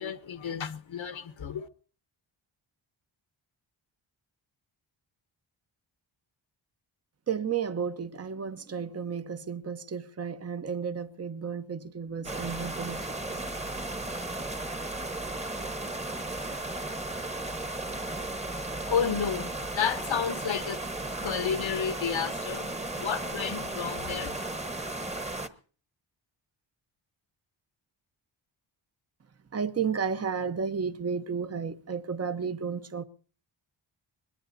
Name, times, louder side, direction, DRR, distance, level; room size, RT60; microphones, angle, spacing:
voice 1, 0.0-1.7 18.4-20.8 21.1-22.7 22.9-24.3, left 7 dB, 70° left, 1.3 m, -31 dB
voice 2, 7.3-13.0 13.3-13.4 29.5-33.0, right 6 dB, 30° right, 1.0 m, -32 dB
sound 1, 12.2-25.5, right 2 dB, 15° right, 1.3 m, -35 dB
22.5 x 21.0 x 2.7 m
cardioid pair, 85°, 48 cm